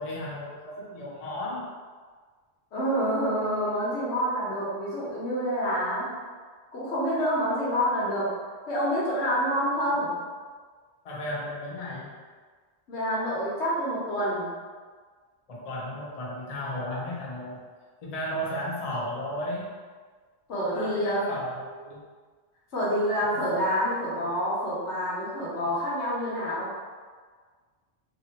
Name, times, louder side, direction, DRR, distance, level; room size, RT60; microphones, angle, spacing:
voice 1, 0.0-1.7 11.0-12.1 15.5-17.6 18.0-19.7 20.7-22.0 23.3-23.6, left 1 dB, 45° left, -4 dB, 0.6 m, -34 dB
voice 2, 2.7-6.1 6.7-8.3 8.7-10.1 12.9-14.5 20.5-21.2 22.7-26.7, equal, 80° left, -7 dB, 1.3 m, -27 dB
2.9 x 2.7 x 2.8 m, 1.5 s
omnidirectional pair, 1.2 m